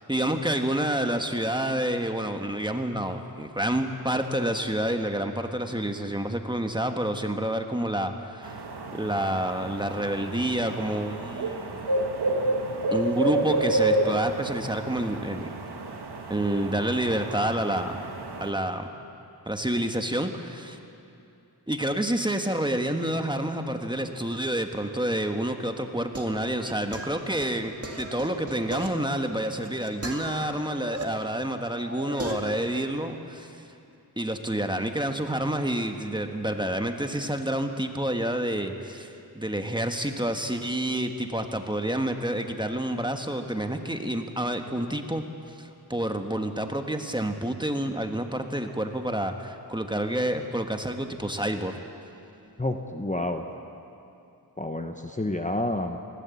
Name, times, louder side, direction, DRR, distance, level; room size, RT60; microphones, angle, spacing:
voice 1, 0.1-8.6 8.9-11.9 12.9-15.5 16.3-18.9 19.4-20.8 21.7-33.6 34.2-45.2 45.6-51.8, right 1 dB, 10° right, 5 dB, 1.4 m, -28 dB
sound 1, 8.4-18.5, right 2 dB, 80° right, 1.7 m, -30 dB
sound 2, 25.6-31.0 31.4-32.6, right 2 dB, 40° right, 2.1 m, -38 dB
voice 2, 52.6-53.4 54.6-56.0, left 1 dB, 20° left, 5 dB, 1.0 m, -29 dB
19.5 x 17.0 x 8.4 m, 2.7 s
wide cardioid pair, 65°, 39 cm